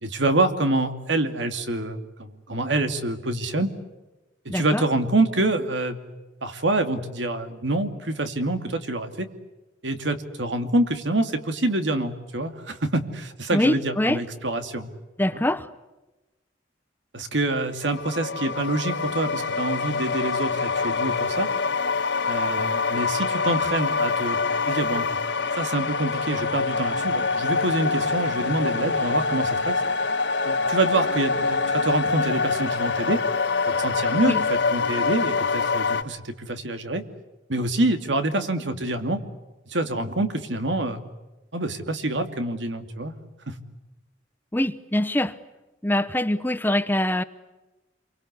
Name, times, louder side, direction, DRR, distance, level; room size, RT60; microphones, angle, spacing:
voice 1, 0.0-3.7 4.4-6.0 6.4-9.3 9.8-14.9 15.3-15.4 17.1-21.5 22.3-24.4 24.7-25.1 25.5-29.8 30.4-33.2 33.7-37.0 37.5-39.2 39.7-41.0 41.5-43.1 43.5-43.6, right 2 dB, 75° right, 2.5 m, -26 dB
voice 2, 4.5-4.8 13.5-14.2 15.2-15.7 34.3-34.4 44.5-45.4 45.8-47.2, left 1 dB, 10° left, 0.9 m, -23 dB
sound 1, 17.8-36.0, left 4 dB, 70° left, 1.5 m, -25 dB
28.5 x 24.0 x 8.2 m
head